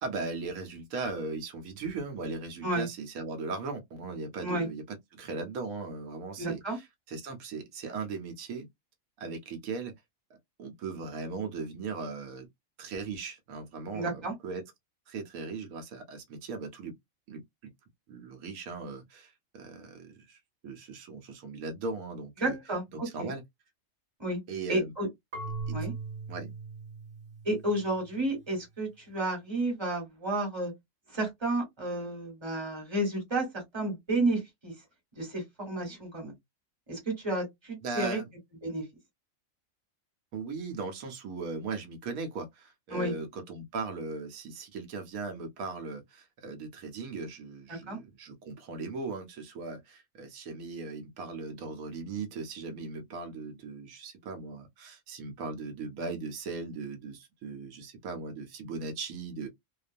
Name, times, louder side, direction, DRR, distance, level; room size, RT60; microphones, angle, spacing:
voice 1, 0.0-4.8 5.1-8.7 9.2-9.9 10.3-12.5 12.8-14.6 15.1-16.9 17.3-17.7 18.1-22.6 22.9-23.4 24.5-24.9 25.7-25.9 26.3-26.5 37.8-38.3 40.3-59.5, right 4 dB, 85° right, 1.1 m, -38 dB
voice 2, 6.4-6.8 13.9-14.3 22.4-23.3 24.2-24.4 24.7-25.1 25.7-25.9 27.4-30.7 31.1-34.7 35.2-36.3 36.9-38.2 38.6-38.8 42.9-43.1 47.7-48.0, right 2 dB, 20° right, 1.2 m, -31 dB
Marimba xylophone / Wood, 25.3-28.2, right 4 dB, 45° right, 1.0 m, -39 dB
2.5 x 2.2 x 2.5 m
omnidirectional pair, 1.4 m